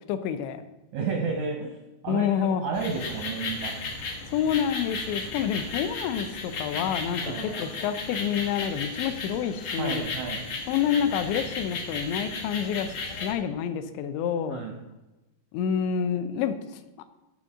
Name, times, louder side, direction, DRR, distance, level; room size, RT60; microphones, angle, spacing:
voice 1, 0.1-0.7 2.1-2.6 4.3-10.0 10.7-12.9 13.2-14.6 15.5-17.0, left 8 dB, 85° left, 10 dB, 3.0 m, -28 dB
voice 2, 0.9-1.8 2.0-3.7 7.2-7.5 9.8-10.4 14.5-14.7, right 5 dB, 80° right, 1 dB, 1.6 m, -31 dB
sound 1, 2.7-13.3, left 3 dB, 70° left, 1.5 m, -35 dB
15.0 x 5.3 x 3.7 m, 1.0 s
omnidirectional pair, 5.1 m